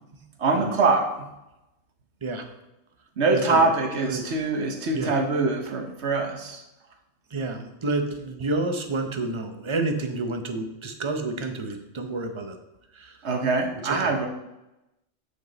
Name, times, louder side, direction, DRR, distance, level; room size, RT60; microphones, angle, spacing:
voice 1, 0.4-1.3 3.2-6.6 13.2-14.3, right 3 dB, 60° right, 4 dB, 1.3 m, -24 dB
voice 2, 3.3-3.7 4.1-4.2 4.9-5.1 7.3-12.6 12.9-13.2 13.8-14.1, right 2 dB, 30° right, 6 dB, 0.7 m, -29 dB
7.5 x 6.4 x 4.0 m, 0.93 s
omnidirectional pair, 1.3 m